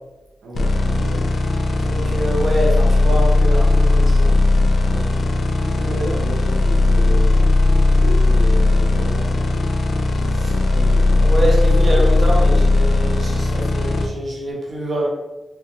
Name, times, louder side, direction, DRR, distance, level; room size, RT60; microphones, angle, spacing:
voice 1, 0.4-1.3 4.9-9.7 10.5-11.1, right 1 dB, 90° right, -4 dB, 0.6 m, -33 dB
sound 1, 0.5-14.1, left 2 dB, 65° left, 0.4 m, -17 dB
voice 2, 1.7-4.3 10.3-10.5 11.1-15.1, right 1 dB, 45° right, -3 dB, 1.0 m, -25 dB
2.8 x 2.1 x 3.0 m, 1.1 s
cardioid pair, 60°, 0 cm